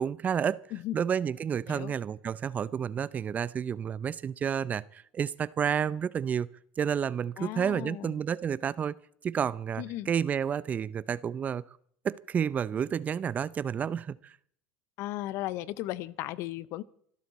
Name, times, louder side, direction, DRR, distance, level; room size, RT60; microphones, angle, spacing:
voice 1, 0.0-0.6 0.9-6.5 6.8-9.0 9.2-11.6 12.0-14.3, right 8 dB, 30° right, 0.5 m, -30 dB
voice 2, 0.7-1.0 1.7-1.9 7.4-8.2 9.8-10.1 15.0-16.8, left 15 dB, 60° left, 0.7 m, -36 dB
25.5 x 12.5 x 4.2 m
supercardioid pair, 105°, 5 cm